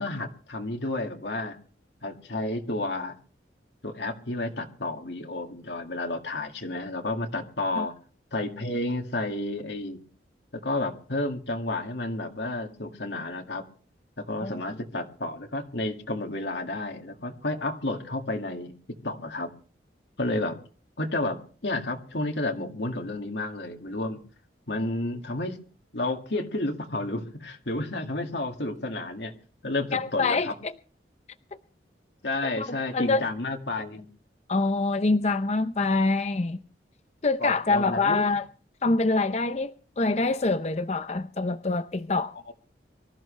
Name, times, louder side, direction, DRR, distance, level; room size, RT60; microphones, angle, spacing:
voice 1, 0.0-1.6 2.0-3.1 3.8-7.9 8.3-10.0 10.5-13.6 14.2-18.7 19.0-19.5 20.2-20.6 21.0-24.2 24.7-25.6 25.9-29.3 29.6-30.5 32.2-34.1 37.4-38.3 42.5-42.6, left 2 dB, 75° left, 2.1 m, -31 dB
voice 2, 29.9-30.7 32.4-32.7 32.9-33.3 34.5-36.6 37.2-38.5 38.8-42.3, left 3 dB, 35° left, 0.6 m, -25 dB
24.0 x 14.0 x 3.3 m
head